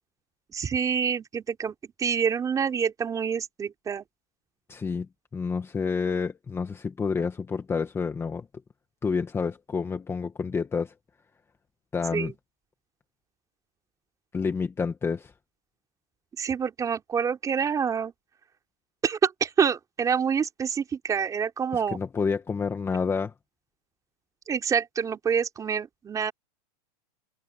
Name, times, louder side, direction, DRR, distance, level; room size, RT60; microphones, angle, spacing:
voice 1, 0.5-4.1 12.1-12.3 16.4-18.1 19.0-22.0 24.5-26.3, right 7 dB, 15° right, 3.7 m, -27 dB
voice 2, 4.7-8.5 9.0-10.9 11.9-12.3 14.3-15.3 21.7-23.3, left 5 dB, 10° left, 1.8 m, -29 dB
supercardioid pair, 145°, 20 cm